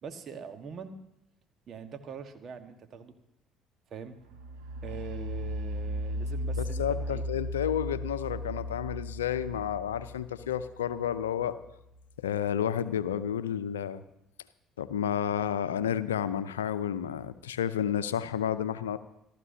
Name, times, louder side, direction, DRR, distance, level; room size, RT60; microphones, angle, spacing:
voice 1, 0.0-1.0 1.7-3.1 3.9-4.2 4.8-7.2 15.0-15.2, right 6 dB, 45° right, 6 dB, 1.5 m, -43 dB
sound 1, 4.3-12.0, equal, 80° right, 4.7 m, -36 dB
voice 2, 6.6-11.6 12.2-14.0 14.8-19.0, left 9 dB, 85° left, 13 dB, 0.6 m, -31 dB
27.5 x 13.5 x 2.8 m, 0.86 s
hypercardioid pair, 55°, 0 cm